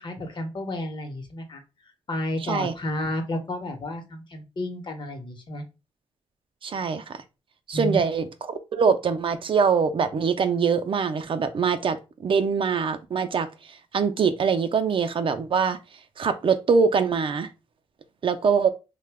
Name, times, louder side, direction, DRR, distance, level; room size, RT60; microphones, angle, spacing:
voice 1, 0.0-1.6 2.1-5.6 7.7-8.0, left 1 dB, 45° left, 0.9 m, -31 dB
voice 2, 2.4-2.7 6.6-7.2 7.7-8.3 8.7-15.8 16.2-17.5 18.2-18.7, right 5 dB, 55° right, 0.4 m, -23 dB
2.8 x 2.1 x 3.4 m
cardioid pair, 75°, 11 cm